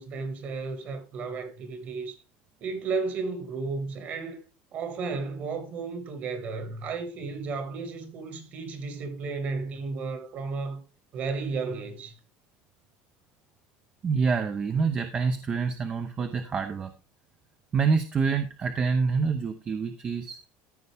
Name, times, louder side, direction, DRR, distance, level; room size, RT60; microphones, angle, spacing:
voice 1, 0.0-2.2 2.6-4.4 4.7-10.8 11.1-12.2, right 4 dB, 40° right, 2.0 m, -33 dB
voice 2, 14.0-16.9 17.7-20.4, right 5 dB, 25° right, 0.7 m, -26 dB
14.0 x 5.5 x 3.5 m
cardioid pair, 155°, 4 cm